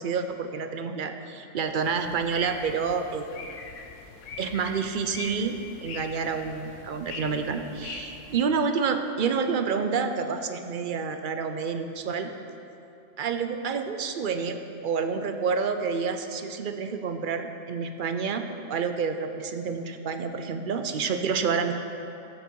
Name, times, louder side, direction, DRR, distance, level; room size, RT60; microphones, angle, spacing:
voice 1, 0.0-3.3 4.4-12.3 13.2-21.7, right 5 dB, 55° right, 7 dB, 0.6 m, -29 dB
sound 1, 1.7-8.5, left 4 dB, 75° left, 1.1 m, -42 dB
12.0 x 8.1 x 4.6 m, 2.8 s
omnidirectional pair, 1.3 m